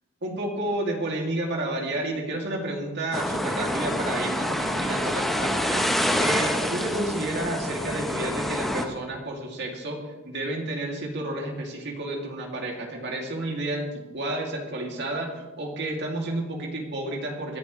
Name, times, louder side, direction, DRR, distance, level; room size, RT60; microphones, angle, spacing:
voice 1, 0.2-17.6, right 1 dB, 55° right, 0 dB, 2.8 m, -31 dB
sound 1, 3.1-8.9, equal, ahead, 1.1 m, -27 dB
24.5 x 10.5 x 3.3 m, 1.2 s
head